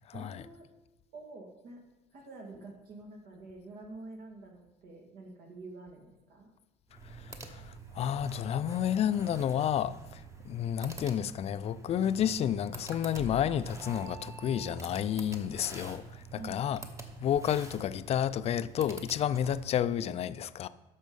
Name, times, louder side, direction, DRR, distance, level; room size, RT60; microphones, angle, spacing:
voice 1, 0.1-0.7 1.1-1.8 2.1-6.5 16.3-16.6, right 2 dB, 70° right, 2.3 m, -47 dB
sound 1, 6.9-19.9, right 3 dB, 15° right, 1.1 m, -47 dB
voice 2, 7.0-16.8 17.2-20.7, left 10 dB, 40° left, 0.4 m, -31 dB
sound 2, 13.1-15.2, right 2 dB, 50° right, 1.7 m, -47 dB
10.5 x 6.5 x 5.3 m
cardioid pair, 130°, 17 cm